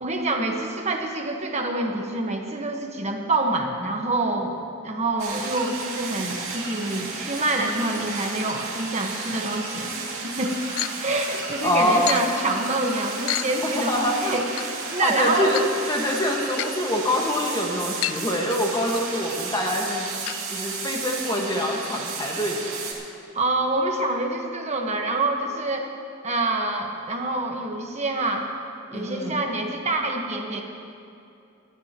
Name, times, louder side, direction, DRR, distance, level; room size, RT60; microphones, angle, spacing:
voice 1, 0.0-4.6 4.8-10.6 11.0-14.4 14.8-15.5 23.3-25.9 26.2-28.5 28.9-30.6, right 2 dB, 35° right, 2 dB, 1.3 m, -26 dB
sound 1, 5.2-22.9, right 4 dB, 85° right, 2.5 m, -33 dB
sound 2, 10.8-11.0 12.1-12.2 13.3-13.5 14.6-14.7 15.4-15.7 16.6-16.7 18.0-18.2 18.5-19.0 20.3-20.4 20.7-20.8 21.1-21.2 21.7-21.8, left 15 dB, 85° left, 0.3 m, -29 dB
voice 2, 11.6-12.2 13.6-14.4 15.0-20.1 20.5-22.7 28.9-29.4, left 1 dB, 20° left, 0 dB, 1.6 m, -25 dB
23.5 x 12.5 x 3.0 m, 2.6 s
head